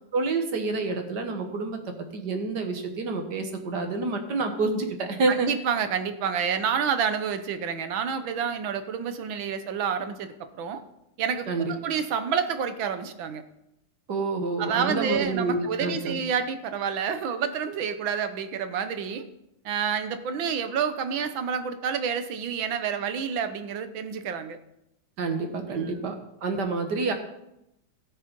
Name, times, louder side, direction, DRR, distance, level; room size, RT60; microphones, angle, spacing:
voice 1, 0.1-1.8 2.1-5.5 11.5-11.7 14.1-16.2 25.2-26.2 26.4-27.1, right 3 dB, 55° right, 5 dB, 1.9 m, -28 dB
voice 2, 5.3-10.8 11.2-13.4 14.6-19.3 19.7-24.6 25.7-25.9, right 7 dB, 75° right, 10 dB, 1.7 m, -29 dB
17.0 x 6.6 x 5.3 m, 0.85 s
omnidirectional pair, 2.2 m